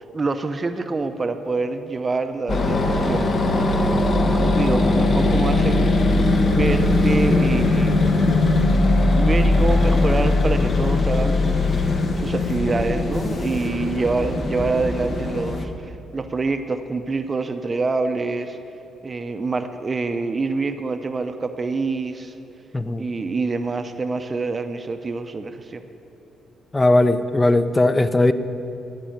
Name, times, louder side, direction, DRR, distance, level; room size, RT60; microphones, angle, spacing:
voice 1, 0.1-3.3 3.9-8.0 9.2-11.7 12.2-18.6 19.0-22.3 23.0-25.8, right 3 dB, 30° right, 8 dB, 0.6 m, -26 dB
sound 1, 2.5-15.6, left 2 dB, 45° left, 1.1 m, -20 dB
voice 2, 26.7-28.3, left 2 dB, 20° left, 11 dB, 0.6 m, -18 dB
14.5 x 5.4 x 8.7 m, 2.9 s
cardioid pair, 90°, 0 cm